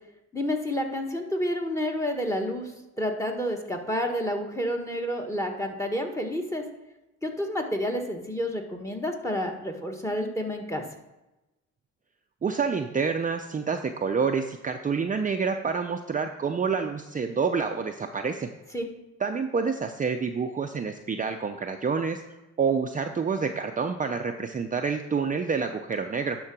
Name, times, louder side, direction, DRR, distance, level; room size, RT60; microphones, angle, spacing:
voice 1, 0.3-2.7 3.0-6.6 7.2-10.8 18.7-18.9, equal, 10° left, 3 dB, 1.4 m, -29 dB
voice 2, 12.4-18.5 19.2-22.2 22.6-26.4, right 5 dB, 25° right, 4 dB, 0.5 m, -28 dB
11.0 x 3.9 x 6.0 m, 1.0 s
cardioid pair, 90°, 30 cm